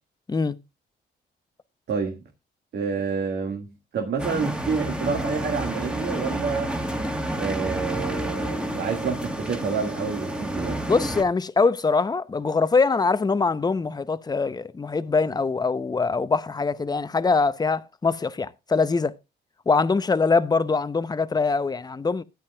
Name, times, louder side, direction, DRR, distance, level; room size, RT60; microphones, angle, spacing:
voice 1, 1.9-2.2 2.7-6.8 7.4-10.8, right 5 dB, 65° right, 1.8 m, -28 dB
sound 1, 4.2-11.2, right 1 dB, 5° right, 1.6 m, -30 dB
voice 2, 10.9-19.1 19.7-22.2, left 4 dB, 20° left, 0.7 m, -23 dB
13.0 x 9.4 x 2.3 m
cardioid pair, 90°, 20 cm